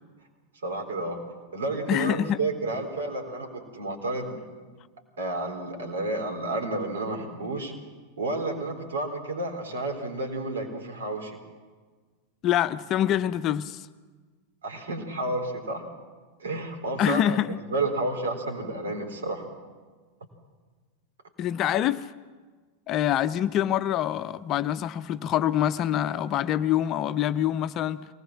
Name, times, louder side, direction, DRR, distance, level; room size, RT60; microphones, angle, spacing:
voice 1, 0.6-1.2 1.5-4.4 5.2-7.7 8.2-11.4 14.6-15.8 16.4-17.4 17.7-19.5, right 2 dB, 65° right, 4 dB, 3.9 m, -31 dB
voice 2, 1.9-2.4 12.4-13.9 17.0-17.6 21.4-22.1 22.9-28.1, left 11 dB, 35° left, 13 dB, 0.6 m, -25 dB
23.5 x 19.0 x 7.3 m, 1.4 s
figure-of-eight pair, 90°, 0 cm